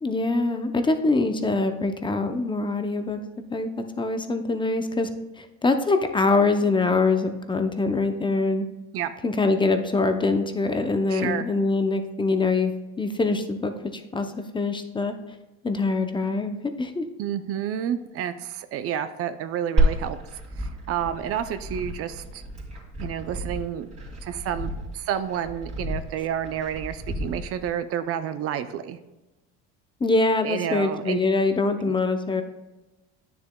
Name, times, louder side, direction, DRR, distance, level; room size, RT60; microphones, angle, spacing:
voice 1, 0.0-3.2 3.5-3.7 4.0-5.1 5.4-8.7 9.2-12.7 13.0-15.1 15.6-17.0 30.0-32.4, left 3 dB, 15° left, 7 dB, 0.5 m, -24 dB
voice 2, 11.1-11.4 17.2-20.2 20.6-22.4 23.0-23.9 24.2-29.0 30.4-31.2 31.8-31.9, right 9 dB, 50° right, 11 dB, 0.5 m, -30 dB
Glass, 19.8-27.7, right 1 dB, 25° right, 2.3 m, -30 dB
9.5 x 6.8 x 2.2 m, 1.1 s
supercardioid pair, 105°, 30 cm